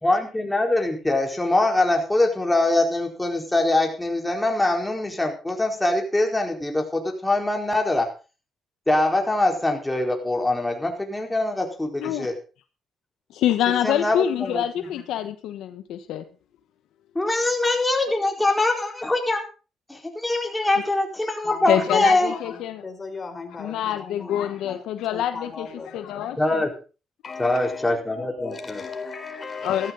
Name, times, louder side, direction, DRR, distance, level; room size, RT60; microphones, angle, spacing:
voice 1, 0.0-8.1 8.9-12.4 13.8-14.9 17.1-19.4 19.9-22.3 26.4-26.7 27.4-28.8, left 2 dB, 10° left, 4.5 m, -23 dB
voice 2, 13.3-16.2 21.7-22.8 23.6-25.7 25.9-26.6 29.6-29.9, left 11 dB, 85° left, 1.2 m, -26 dB
voice 3, 21.4-24.8 25.1-26.3 27.2-29.9, left 4 dB, 35° left, 4.1 m, -37 dB
14.5 x 14.0 x 4.0 m
cardioid pair, 90°, 0 cm